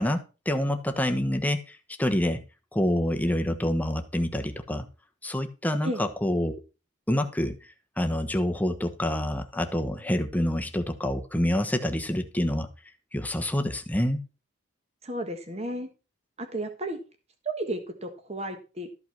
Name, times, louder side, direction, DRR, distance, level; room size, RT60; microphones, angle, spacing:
voice 1, 0.0-2.4 2.7-4.9 5.2-6.6 7.1-7.6 8.0-12.7 13.1-14.2, left 1 dB, 5° left, 6 dB, 1.0 m, -27 dB
voice 2, 15.0-15.9 16.4-17.0 17.6-18.9, right 1 dB, 30° right, 6 dB, 1.5 m, -33 dB
13.0 x 5.7 x 5.9 m, 0.32 s
head